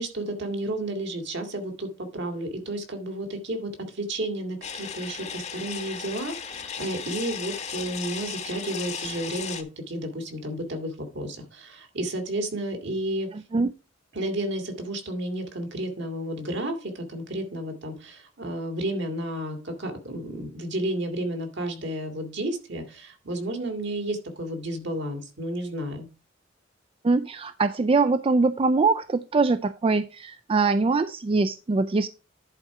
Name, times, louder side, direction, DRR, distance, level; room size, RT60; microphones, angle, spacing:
voice 1, 0.0-13.3 14.1-26.1, right 1 dB, 65° right, 5 dB, 2.1 m, -32 dB
sound 1, 4.6-9.6, left 7 dB, 35° left, 1.0 m, -36 dB
voice 2, 13.3-13.7 27.0-32.1, right 3 dB, 30° right, 11 dB, 0.4 m, -23 dB
10.5 x 4.3 x 4.8 m, 0.32 s
head